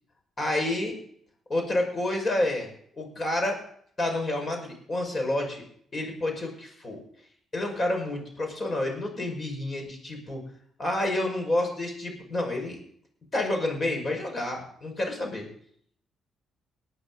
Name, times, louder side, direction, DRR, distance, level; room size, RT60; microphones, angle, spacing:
voice 1, 0.4-1.0 1.5-2.7 3.0-3.6 4.0-5.6 5.9-7.0 7.5-10.4 10.8-12.8 13.3-15.5, left 1 dB, 35° left, 2 dB, 5.7 m, -29 dB
18.5 x 9.4 x 4.1 m, 0.62 s
cardioid pair, 90°, 0 cm